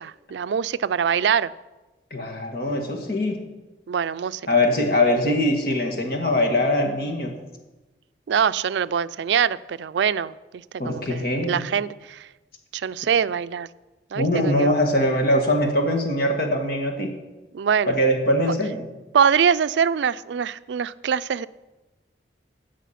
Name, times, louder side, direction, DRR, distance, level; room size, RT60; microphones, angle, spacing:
voice 1, 0.0-1.5 3.9-4.4 8.3-12.3 12.7-13.7 14.1-14.7 17.5-17.9 19.1-21.5, right 7 dB, 85° right, 0.4 m, -23 dB
voice 2, 2.1-3.4 4.5-7.4 10.8-11.7 14.1-17.1 17.9-18.8, left 1 dB, 55° left, 1.9 m, -22 dB
16.5 x 6.3 x 5.8 m
head